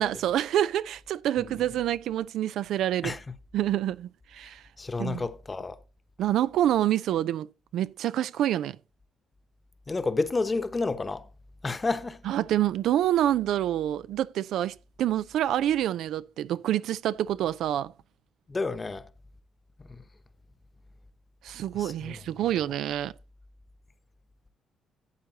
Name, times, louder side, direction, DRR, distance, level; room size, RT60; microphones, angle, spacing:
voice 1, 0.0-3.1 3.5-4.6 5.0-5.2 6.2-7.5 7.7-8.8 12.3-17.9 21.4-23.1, right 12 dB, 80° right, 0.4 m, -27 dB
voice 2, 4.8-5.8 9.9-11.3 11.6-12.2 18.5-19.0 19.9-20.0 21.7-22.2, left 3 dB, 25° left, 1.0 m, -30 dB
12.0 x 8.0 x 2.8 m
cardioid pair, 90°, 0 cm